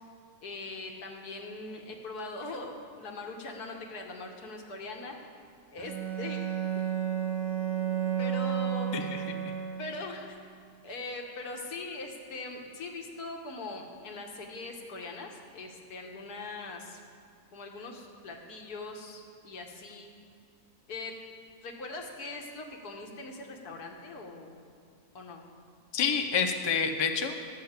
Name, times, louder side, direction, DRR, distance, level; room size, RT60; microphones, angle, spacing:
voice 1, 0.4-5.1 5.7-6.5 8.2-8.9 9.8-10.4 10.8-17.0 17.5-20.1 20.9-21.1 21.6-24.5 25.1-25.4, left 2 dB, 75° left, 2 dB, 1.8 m, -41 dB
Bowed string instrument, 5.8-10.2, right 9 dB, 20° right, 0.8 m, -32 dB
voice 2, 25.9-27.6, left 6 dB, 45° left, 6 dB, 0.3 m, -29 dB
13.0 x 6.5 x 8.1 m, 2.2 s
omnidirectional pair, 1.7 m